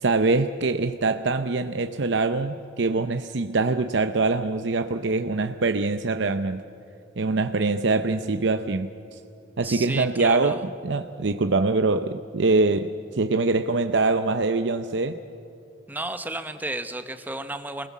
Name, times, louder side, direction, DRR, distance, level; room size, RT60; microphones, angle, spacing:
voice 1, 0.0-6.6 7.2-9.2 9.6-15.2, right 3 dB, 65° right, 8 dB, 0.7 m, -24 dB
voice 2, 9.6-10.6 15.9-17.9, right 2 dB, 10° right, 9 dB, 0.9 m, -32 dB
28.5 x 20.0 x 7.4 m, 2.8 s
head